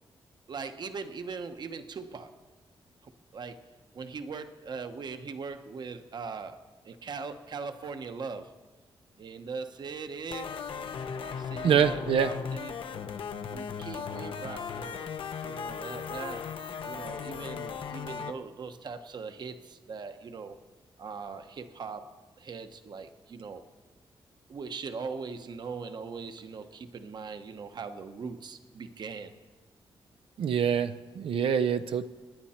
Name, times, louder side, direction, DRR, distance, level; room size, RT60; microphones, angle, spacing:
voice 1, 0.5-2.3 3.0-3.6 3.9-6.6 6.8-8.6 9.2-10.7 11.4-12.7 13.5-15.1 15.4-20.6 21.0-22.1 22.4-23.6 24.5-29.4, right 5 dB, 50° right, 8 dB, 1.0 m, -40 dB
sound 1, 10.3-18.3, left 6 dB, 70° left, 0.9 m, -37 dB
voice 2, 11.6-12.3 30.4-32.1, right 8 dB, 75° right, 10 dB, 0.6 m, -25 dB
27.0 x 10.5 x 4.4 m, 1.3 s
wide cardioid pair, 135°, 9 cm